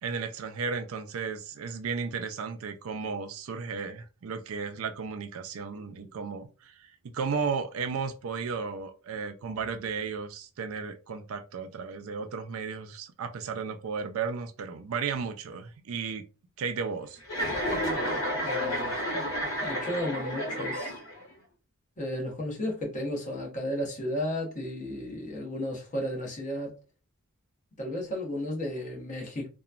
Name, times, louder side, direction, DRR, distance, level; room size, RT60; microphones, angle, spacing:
voice 1, 0.0-16.2 16.6-17.2, right 5 dB, 65° right, 0.4 m, -34 dB
voice 2, 5.7-6.1 18.4-19.0 19.6-21.0 22.0-26.7 27.8-29.5, left 1 dB, 35° left, 0.9 m, -34 dB
Chuckle chortle, 17.2-21.3, equal, 70° left, 1.2 m, -31 dB
2.9 x 2.2 x 2.4 m
head